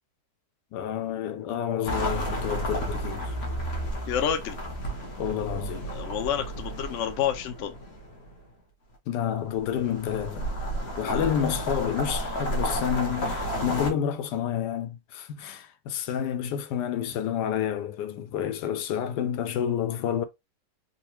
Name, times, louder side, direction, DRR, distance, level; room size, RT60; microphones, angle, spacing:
voice 1, 0.7-3.4 5.2-5.9 9.1-10.5 11.0-20.2, left 9 dB, 90° left, 1.2 m, -29 dB
sound 1, 1.8-8.3 9.5-13.9, right 1 dB, 45° left, 1.2 m, -32 dB
voice 2, 4.0-4.6 5.9-7.7 11.1-11.3, left 9 dB, 65° left, 0.8 m, -29 dB
3.9 x 2.3 x 2.9 m
omnidirectional pair, 1.7 m